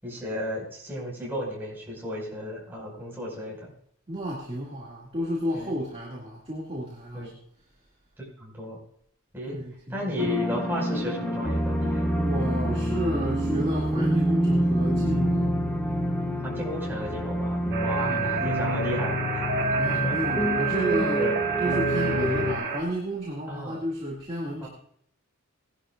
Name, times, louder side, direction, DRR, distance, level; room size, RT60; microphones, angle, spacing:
voice 1, 0.0-3.7 5.5-5.7 7.1-7.3 8.4-8.8 9.3-9.6 9.9-12.1 16.4-19.4 19.9-20.2 21.0-21.3 23.5-23.8 24.6-24.7, left 1 dB, 10° right, -4 dB, 5.3 m, -34 dB
voice 2, 4.1-7.3 9.4-10.2 12.1-15.5 18.0-18.4 19.8-21.3 21.6-24.7, equal, 25° right, -5 dB, 2.2 m, -32 dB
sound 1, 10.2-22.5, equal, 5° left, 1.5 m, -27 dB
sound 2, 17.7-22.8, right 4 dB, 50° right, 2.3 m, -28 dB
19.0 x 11.5 x 2.5 m, 0.69 s
head